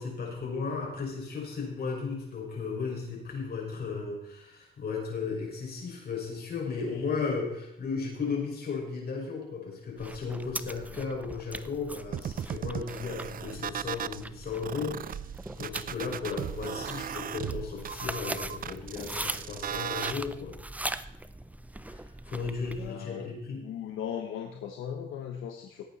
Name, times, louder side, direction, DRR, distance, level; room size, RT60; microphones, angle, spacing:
voice 1, 0.0-20.6 21.8-23.6, left 5 dB, 50° left, -1 dB, 5.6 m, -35 dB
sound 1, 10.0-22.9, right 1 dB, 5° right, 0.6 m, -41 dB
sound 2, 12.1-14.2 14.6-20.1, right 9 dB, 45° right, 0.5 m, -36 dB
voice 2, 22.8-23.3 23.6-25.8, left 8 dB, 85° left, 3 dB, 1.2 m, -37 dB
17.5 x 8.8 x 4.2 m, 0.81 s
cardioid pair, 90°, 20 cm